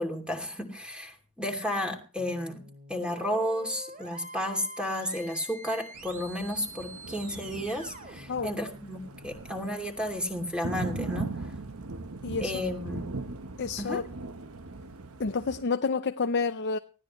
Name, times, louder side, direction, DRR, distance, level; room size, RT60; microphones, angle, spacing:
voice 1, 0.0-2.6 2.9-11.3 12.4-13.1 13.8-14.0, equal, 5° right, 2.8 m, -32 dB
sound 1, 2.2-9.3, right 1 dB, 40° right, 3.1 m, -46 dB
Thunder, 6.0-15.6, right 3 dB, 80° right, 1.1 m, -40 dB
voice 2, 13.6-14.0 15.2-16.8, left 4 dB, 55° left, 0.6 m, -29 dB
19.5 x 15.0 x 3.1 m
head